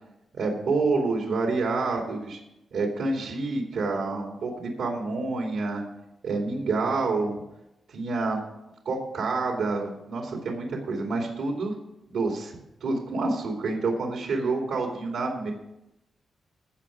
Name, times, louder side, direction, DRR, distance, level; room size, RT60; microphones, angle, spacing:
voice 1, 0.3-2.4 2.7-5.8 6.2-7.4 7.9-8.4 8.8-11.7 12.1-15.5, right 3 dB, 85° right, 1 dB, 2.6 m, -28 dB
15.0 x 5.0 x 7.3 m, 0.89 s
cardioid pair, 85°, 0 cm